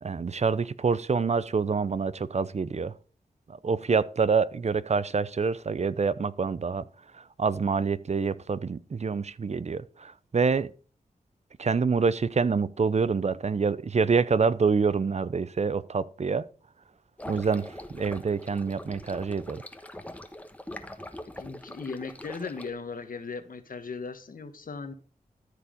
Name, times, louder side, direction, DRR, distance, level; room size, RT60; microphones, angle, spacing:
voice 1, 0.0-2.9 3.5-6.9 7.1-10.7 11.6-16.5 17.3-19.6, right 5 dB, 50° right, 0.6 m, -26 dB
sound 1, 17.2-22.7, left 1 dB, 10° left, 1.2 m, -42 dB
voice 2, 21.4-24.9, left 4 dB, 70° left, 1.4 m, -37 dB
13.5 x 4.8 x 5.1 m
cardioid pair, 60°, 15 cm